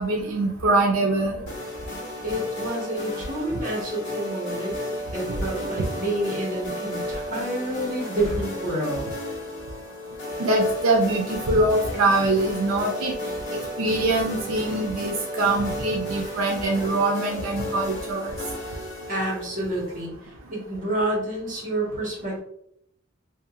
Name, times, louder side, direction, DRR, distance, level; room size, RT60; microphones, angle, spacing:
voice 1, 0.0-1.4 10.4-13.1 13.8-18.3, right 2 dB, 90° right, 0 dB, 0.5 m, -23 dB
sound 1, 1.5-20.0, equal, 55° left, 1.2 m, -33 dB
voice 2, 2.2-4.8 5.1-9.1 19.1-22.4, right 1 dB, 40° right, -4 dB, 1.3 m, -29 dB
2.8 x 2.8 x 2.4 m, 0.73 s
head